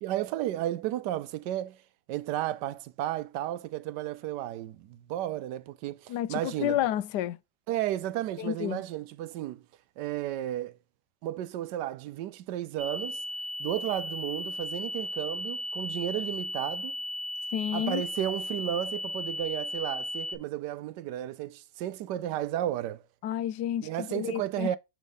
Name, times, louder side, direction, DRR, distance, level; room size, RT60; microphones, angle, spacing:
voice 1, 0.0-1.8 2.1-6.8 7.7-9.6 10.0-10.8 11.2-13.2 13.6-17.0 17.7-23.0 23.8-24.8, right 13 dB, 85° right, 1.2 m, -33 dB
voice 2, 6.1-7.4 8.4-8.8 17.5-18.0 23.2-24.8, left 12 dB, 80° left, 1.2 m, -30 dB
sound 1, 12.8-20.4, left 1 dB, 50° right, 0.5 m, -36 dB
7.2 x 3.2 x 5.4 m
omnidirectional pair, 1.8 m